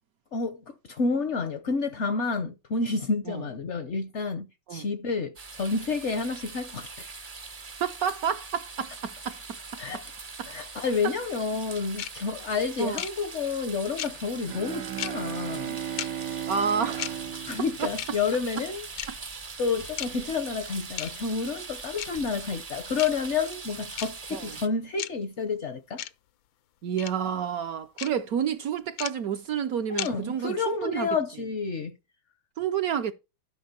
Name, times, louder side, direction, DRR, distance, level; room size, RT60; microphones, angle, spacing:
voice 1, 0.3-7.1 9.8-10.0 10.5-15.8 17.5-18.9 19.6-26.0 29.9-32.0, left 4 dB, 60° left, 0.7 m, -30 dB
sound 1, 5.3-24.7, right 4 dB, 45° right, 0.4 m, -42 dB
voice 2, 7.8-9.8 10.4-10.5 11.0-11.1 12.8-13.0 16.5-17.4 17.8-17.9 19.1-19.2 24.3-24.5 26.8-31.1 32.6-33.1, right 8 dB, 65° right, 0.9 m, -30 dB
sound 2, 12.0-12.1 13.0-13.1 14.0-14.1 15.0-15.1 16.0-16.1 17.0-17.1 18.0-18.1 19.0-19.1 20.0-20.1 21.0-21.1 22.0-22.1 23.0-23.1 24.0-24.1 25.0-25.1 26.0-26.1 27.0-27.1 28.0-28.1 29.0-29.1 30.0-30.1, left 13 dB, 85° left, 1.4 m, -33 dB
Bowed string instrument, 14.4-18.7, right 10 dB, 80° right, 1.5 m, -35 dB
11.5 x 5.7 x 4.4 m
omnidirectional pair, 2.1 m